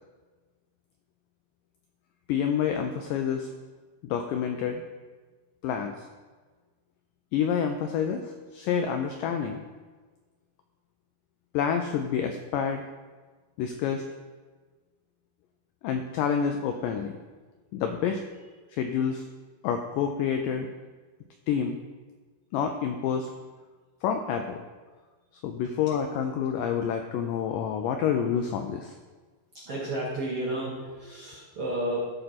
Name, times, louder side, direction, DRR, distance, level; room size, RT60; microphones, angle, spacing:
voice 1, 2.3-3.5 4.0-4.8 5.6-6.1 7.3-9.6 11.5-12.8 13.6-14.0 15.8-17.2 17.7-19.2 19.6-20.7 21.5-21.8 22.5-23.3 24.0-24.6 25.4-28.9, left 7 dB, 85° left, 5 dB, 1.9 m, -28 dB
voice 2, 29.5-32.1, right 1 dB, 55° right, -6 dB, 1.6 m, -32 dB
13.0 x 4.5 x 4.1 m, 1.4 s
omnidirectional pair, 4.4 m